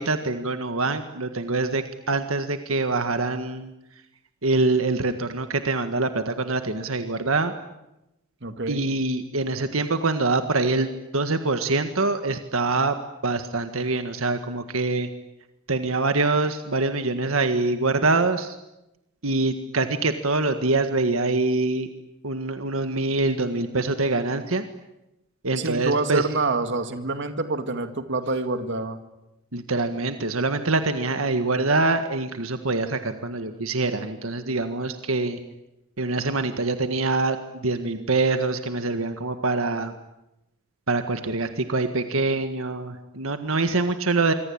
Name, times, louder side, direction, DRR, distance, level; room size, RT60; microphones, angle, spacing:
voice 1, 0.0-3.7 4.4-7.5 8.7-10.9 11.1-13.0 13.2-15.1 15.7-18.6 19.2-21.9 22.2-24.6 25.4-26.3 29.5-35.4 36.0-39.9 40.9-44.3, right 3 dB, 80° right, 8 dB, 1.7 m, -24 dB
voice 2, 8.4-8.8 25.6-29.0, right 3 dB, 60° right, 8 dB, 2.2 m, -27 dB
26.0 x 24.5 x 8.8 m, 0.93 s
head